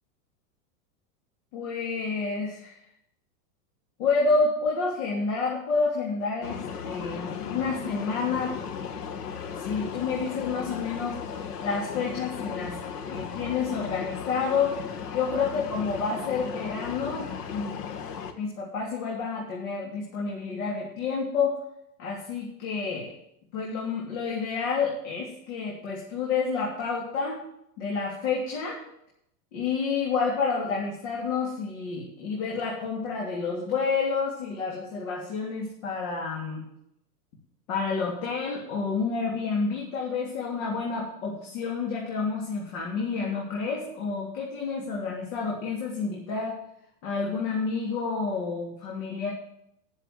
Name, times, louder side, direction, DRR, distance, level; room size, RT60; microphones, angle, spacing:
voice 1, 1.5-2.7 4.0-8.6 9.6-11.2 11.6-12.8 13.0-14.7 15.1-17.7 18.4-21.6 22.0-23.1 23.5-27.4 27.8-28.8 29.5-36.6 37.7-46.6 47.0-49.3, left 4 dB, 60° left, -3 dB, 3.4 m, -29 dB
sound 1, 6.4-18.3, left 7 dB, 85° left, 1.7 m, -36 dB
11.0 x 7.5 x 7.8 m, 0.77 s
supercardioid pair, 140°, 46 cm